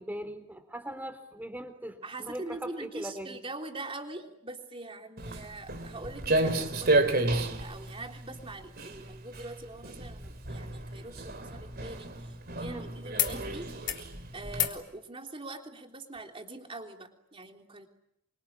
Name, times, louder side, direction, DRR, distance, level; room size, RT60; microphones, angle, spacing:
voice 1, 0.0-3.4 12.6-12.8, equal, 10° right, 8 dB, 3.5 m, -40 dB
voice 2, 2.0-14.0 14.3-17.9, right 2 dB, 25° right, 3 dB, 3.3 m, -43 dB
Walk footsteps, 5.2-14.6, right 2 dB, 45° right, 3.4 m, -32 dB
sound 1, 11.0-12.8 13.1-13.4 13.7-14.1 14.5-14.8 16.1-16.2, left 13 dB, 55° left, 3.5 m, -35 dB
27.0 x 25.0 x 8.7 m, 0.80 s
head